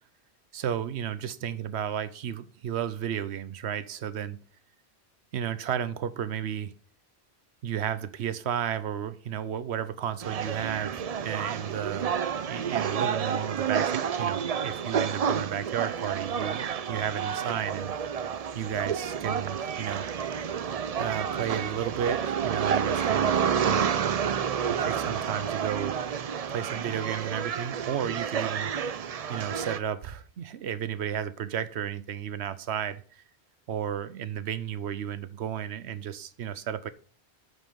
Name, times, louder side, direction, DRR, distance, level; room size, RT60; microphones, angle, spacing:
voice 1, 0.5-4.4 5.3-6.7 7.6-17.9 18.5-20.1 21.0-24.3 24.7-26.1 26.5-28.7 29.3-33.2 33.7-36.9, right 9 dB, 85° right, 1.0 m, -33 dB
sound 1, 10.2-29.8, right 7 dB, 50° right, 0.5 m, -29 dB
8.2 x 5.5 x 5.4 m
omnidirectional pair, 1.1 m